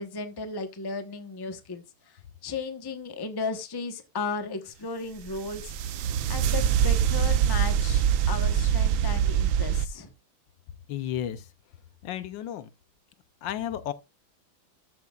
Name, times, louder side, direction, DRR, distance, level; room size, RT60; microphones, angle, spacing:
voice 1, 0.0-5.8 6.3-10.1, left 4 dB, 20° left, 0.8 m, -35 dB
sound 1, 5.3-9.9, right 9 dB, 85° right, 1.5 m, -24 dB
voice 2, 10.9-11.5 12.0-12.7 13.4-13.9, left 10 dB, 75° left, 1.4 m, -32 dB
13.0 x 8.0 x 2.4 m
omnidirectional pair, 2.1 m